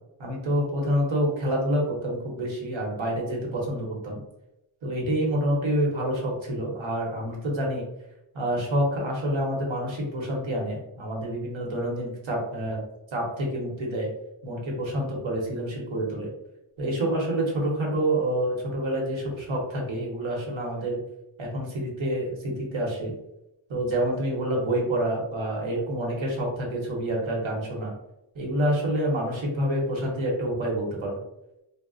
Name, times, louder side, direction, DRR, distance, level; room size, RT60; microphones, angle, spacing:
voice 1, 0.2-4.2 4.8-7.8 8.3-12.8 13.1-14.1 14.4-16.3 16.8-21.0 21.4-23.1 23.7-27.9 28.3-31.2, right 1 dB, 70° right, -2 dB, 1.0 m, -27 dB
2.4 x 2.1 x 3.8 m, 0.88 s
wide cardioid pair, 165°, 48 cm